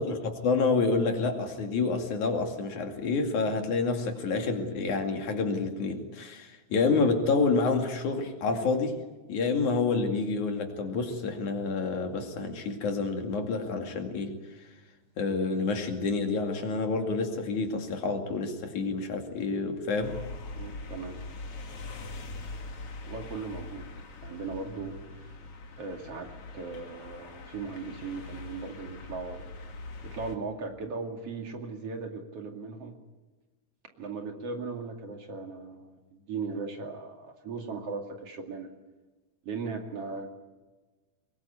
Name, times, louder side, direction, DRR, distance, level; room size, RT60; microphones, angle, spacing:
voice 1, 0.0-9.0 9.3-14.4 15.2-20.2, left 4 dB, 85° left, 4 dB, 3.9 m, -28 dB
sound 1, 20.0-30.4, left 3 dB, 55° left, 2.8 m, -42 dB
voice 2, 20.6-21.2 23.0-23.9 24.2-25.3 25.8-29.5 30.0-33.0 34.0-38.7 39.4-40.3, right 4 dB, 55° right, 3 dB, 3.3 m, -38 dB
24.0 x 21.5 x 8.6 m, 1.2 s
omnidirectional pair, 3.3 m